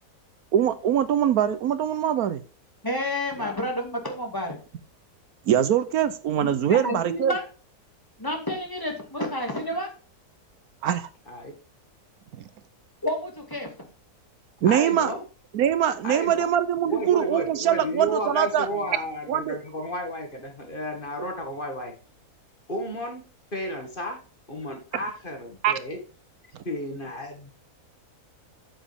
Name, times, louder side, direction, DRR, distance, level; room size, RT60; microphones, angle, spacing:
voice 1, 0.5-2.4 5.5-7.3 10.8-11.1 12.3-12.4 14.6-15.1 15.5-18.7 19.3-19.6 25.6-25.7, right 10 dB, 75° right, 13 dB, 1.2 m, -23 dB
voice 2, 2.8-4.6 6.4-7.4 8.2-9.9 13.0-13.7, left 1 dB, 15° left, 1 dB, 2.4 m, -30 dB
voice 3, 14.6-15.2 16.0-16.5 16.9-21.9 22.7-23.2 23.5-24.2 24.5-26.0 26.6-27.5, equal, 35° left, 3 dB, 2.2 m, -32 dB
8.9 x 7.1 x 3.6 m, 0.37 s
omnidirectional pair, 1.6 m